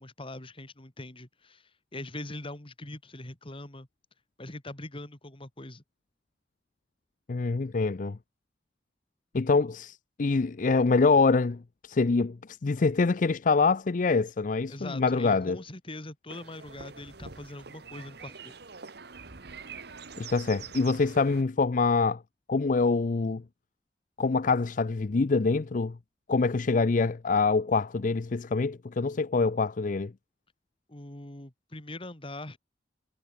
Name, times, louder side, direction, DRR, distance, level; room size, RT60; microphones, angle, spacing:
voice 1, 0.0-3.9 4.4-5.8 14.7-18.5 30.9-32.6, left 2 dB, 30° left, 2.5 m, -42 dB
voice 2, 7.3-8.2 9.3-15.6 20.2-22.2 22.5-23.4 24.2-26.0 26.3-30.1, left 4 dB, 45° left, 0.5 m, -25 dB
sound 1, 16.3-21.4, right 5 dB, 60° right, 1.6 m, -45 dB
head